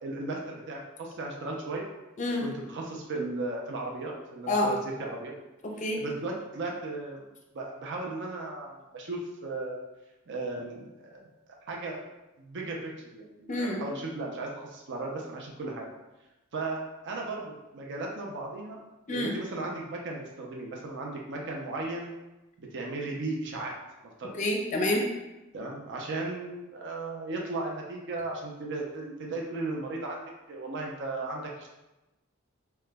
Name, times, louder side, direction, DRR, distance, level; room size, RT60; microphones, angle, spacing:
voice 1, 0.0-1.9 2.4-5.3 6.0-7.2 7.5-9.8 10.3-11.2 11.7-12.0 12.4-15.9 16.5-18.8 19.1-22.1 22.6-23.8 24.2-24.3 25.5-30.2 30.5-31.7, right 2 dB, 60° right, -1 dB, 0.5 m, -36 dB
voice 2, 5.6-6.0 13.5-13.8 19.1-19.3 24.3-25.0, left 1 dB, 35° left, 1 dB, 0.5 m, -28 dB
2.9 x 2.2 x 3.4 m, 1.0 s
head